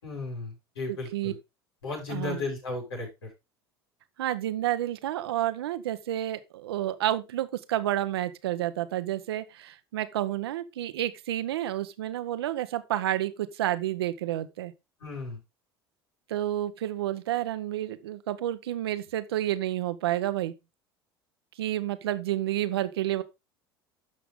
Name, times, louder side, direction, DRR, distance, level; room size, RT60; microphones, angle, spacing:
voice 1, 0.0-1.4 1.8-3.3 15.0-15.4, left 3 dB, 85° left, 6.4 m, -35 dB
voice 2, 0.9-1.3 2.1-2.4 4.2-14.7 16.3-20.5 21.6-23.2, right 13 dB, 80° right, 1.0 m, -30 dB
12.0 x 5.8 x 3.7 m
hypercardioid pair, 75°, 13 cm